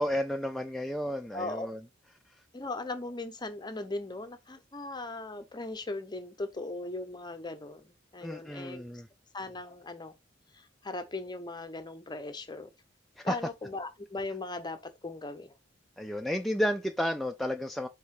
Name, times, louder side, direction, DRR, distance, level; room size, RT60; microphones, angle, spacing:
voice 1, 0.0-1.8 8.2-9.1 13.2-13.4 16.0-17.9, equal, ahead, 0.3 m, -32 dB
voice 2, 1.3-1.7 2.5-8.8 9.3-10.1 10.5-12.7 13.2-15.5, left 2 dB, 25° left, 0.8 m, -38 dB
5.4 x 3.7 x 4.7 m
head